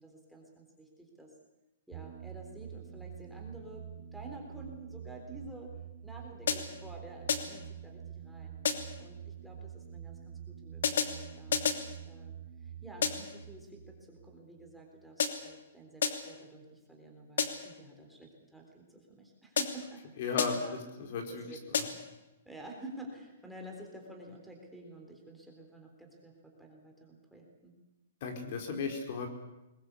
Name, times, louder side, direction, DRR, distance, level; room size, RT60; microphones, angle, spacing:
voice 1, 0.0-1.4 1.9-5.8 6.0-8.6 9.0-11.7 12.1-20.8 21.3-21.6 22.5-27.8, right 1 dB, ahead, -1 dB, 3.7 m, -50 dB
sound 1, 1.9-15.1, right 9 dB, 40° right, 3.5 m, -47 dB
sound 2, 6.5-6.9 7.3-7.7 8.6-9.1 10.8-11.9 13.0-13.4 15.2-15.6 16.0-16.4 17.4-17.8 19.6-20.0 20.4-20.8 21.7-22.2, left 6 dB, 75° left, 2.8 m, -32 dB
voice 2, 20.2-20.6 21.0-21.4 21.7-21.9 28.2-29.3, left 5 dB, 50° left, 4 dB, 4.7 m, -35 dB
22.0 x 20.0 x 8.4 m, 0.98 s
hypercardioid pair, 155°, 0 cm